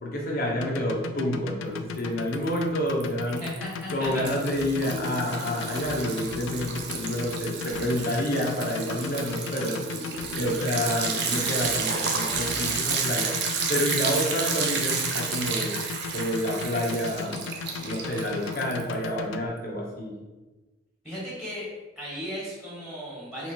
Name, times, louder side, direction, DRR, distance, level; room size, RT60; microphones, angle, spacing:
voice 1, 0.0-3.4 3.9-9.8 10.3-13.3 13.7-15.8 16.1-17.4 17.8-20.1, equal, 50° left, -3 dB, 1.0 m, -29 dB
sound 1, 0.6-19.4, left 6 dB, 75° left, 0.3 m, -36 dB
Liquid, 2.0-2.6 2.9-19.1, right 5 dB, 60° right, 0.6 m, -31 dB
voice 2, 3.4-4.1 21.0-21.7 22.0-23.5, equal, ahead, -7 dB, 1.3 m, -36 dB
3.8 x 2.9 x 4.4 m, 1.2 s
head